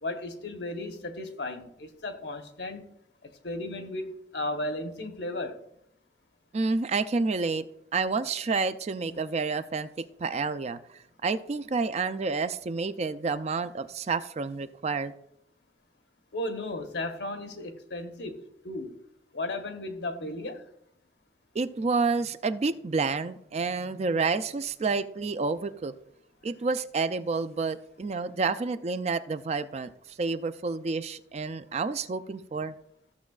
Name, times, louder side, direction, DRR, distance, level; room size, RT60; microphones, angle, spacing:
voice 1, 0.0-2.8 3.2-5.6 9.1-9.2 16.3-19.0 19.3-20.6, left 2 dB, 70° left, 1.0 m, -35 dB
voice 2, 6.5-7.6 7.9-9.9 10.2-10.8 11.2-15.1 21.5-25.9 26.4-29.9 30.2-32.7, right 4 dB, 35° right, 0.4 m, -29 dB
14.5 x 7.1 x 2.4 m
head